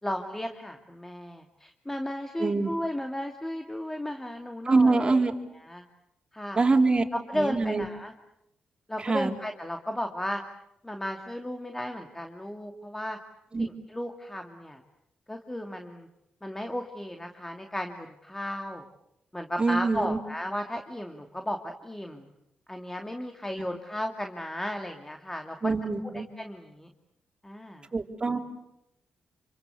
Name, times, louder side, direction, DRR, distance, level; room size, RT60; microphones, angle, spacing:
voice 1, 0.0-5.2 5.7-5.8 6.3-6.6 7.1-8.1 8.9-10.4 10.8-13.2 13.6-14.8 15.3-16.1 16.4-18.8 19.3-22.3 22.7-25.7 26.1-26.9 27.4-27.9, left 1 dB, 15° left, 4 dB, 2.6 m, -34 dB
voice 2, 2.4-2.7 4.6-5.3 6.5-7.0 7.3-7.8 9.0-9.3 13.5-13.7 19.6-20.2 25.6-26.3 27.9-28.4, right 3 dB, 35° right, 3 dB, 3.9 m, -24 dB
28.0 x 25.5 x 8.4 m, 0.82 s
supercardioid pair, 60°, 3 cm